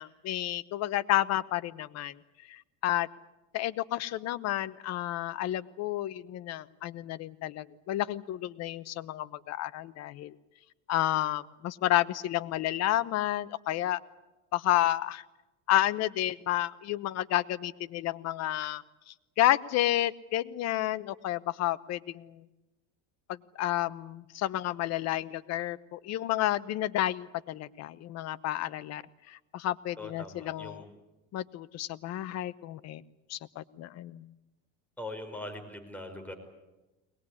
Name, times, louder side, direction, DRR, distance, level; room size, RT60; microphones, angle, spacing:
voice 1, 0.0-2.1 2.5-3.1 3.5-10.3 10.9-14.0 14.5-15.2 15.7-22.4 23.3-30.8 31.3-33.0 33.3-34.3, left 14 dB, 50° left, 16 dB, 1.0 m, -31 dB
voice 2, 30.0-30.8 35.0-36.3, left 1 dB, 5° left, 4 dB, 5.0 m, -41 dB
22.0 x 20.0 x 9.8 m, 1.0 s
supercardioid pair, 120°, 33 cm